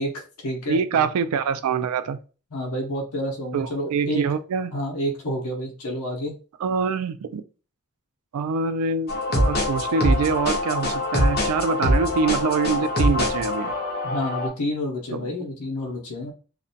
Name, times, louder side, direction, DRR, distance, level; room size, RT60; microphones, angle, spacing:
voice 1, 0.0-1.0 2.5-4.3 4.7-6.3 14.0-16.3, equal, 90° left, 0.7 m, -29 dB
voice 2, 0.7-2.2 3.5-4.7 6.6-7.4 8.3-13.7 15.1-15.3, right 5 dB, 90° right, 0.3 m, -25 dB
sound 1, 9.1-14.5, left 1 dB, 45° left, 0.8 m, -23 dB
2.5 x 2.1 x 2.6 m
head